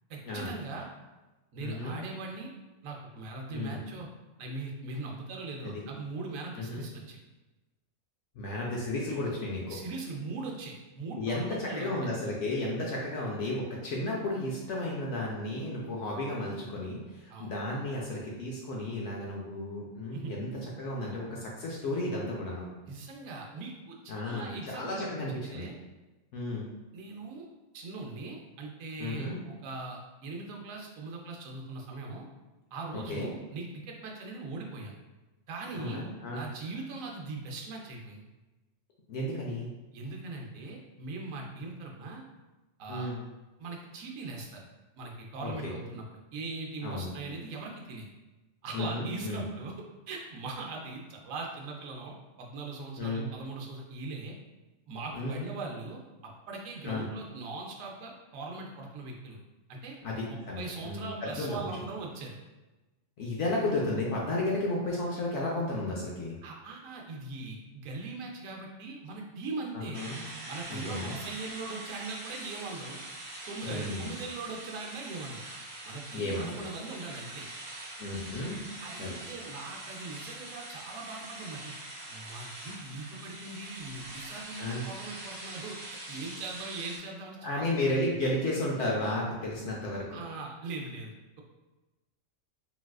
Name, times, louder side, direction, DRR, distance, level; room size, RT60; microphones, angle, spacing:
voice 1, 0.1-0.9 1.5-2.5 2.8-4.1 4.4-7.2 9.7-11.9 17.3-17.5 20.1-20.3 22.9-25.1 25.5-25.8 26.9-27.5 27.7-32.3 32.7-34.9 35.5-36.0 36.3-38.2 39.9-42.2 42.8-43.1 43.6-44.6 45.0-48.1 48.6-49.7 50.1-54.4 54.9-59.4 59.7-60.0 60.3-62.4 66.4-70.0 70.5-73.0 73.5-75.4 75.8-77.5 78.8-81.7 82.1-85.8 86.1-88.0 90.1-91.4, right 3 dB, 90° right, 0 dB, 1.0 m, -40 dB
voice 2, 1.6-2.0 3.5-3.8 5.6-5.8 6.6-6.9 8.4-9.8 11.2-22.7 24.1-25.7 26.3-26.7 29.0-29.4 32.9-33.3 35.7-36.4 39.1-39.7 42.9-43.2 45.4-45.7 46.8-47.1 48.7-49.4 53.0-53.3 55.1-55.4 56.8-57.1 60.0-61.7 63.2-66.4 69.7-70.2 70.7-71.2 73.6-74.1 76.1-76.6 78.0-78.6 79.0-79.2 84.6-84.9 87.4-90.2, left 1 dB, 70° left, -3 dB, 0.8 m, -33 dB
sound 1, 69.9-87.0, right 2 dB, 60° right, 1.1 m, -43 dB
3.9 x 2.3 x 2.3 m, 1.1 s
omnidirectional pair, 1.4 m